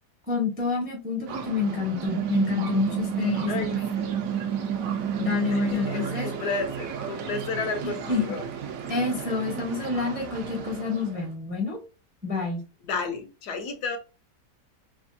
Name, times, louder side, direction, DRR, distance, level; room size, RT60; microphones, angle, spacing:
voice 1, 0.3-3.8 5.2-6.3 7.8-8.3 8.9-11.8 12.2-12.6, left 4 dB, 10° right, 0.4 m, -28 dB
sound 1, 1.3-11.3, right 7 dB, 70° right, 0.9 m, -36 dB
sound 2, 2.1-6.0, right 9 dB, 85° right, 1.2 m, -29 dB
voice 2, 3.5-4.1 5.5-8.4 12.8-14.0, left 4 dB, 75° left, 1.2 m, -32 dB
3.3 x 2.3 x 2.5 m
omnidirectional pair, 1.8 m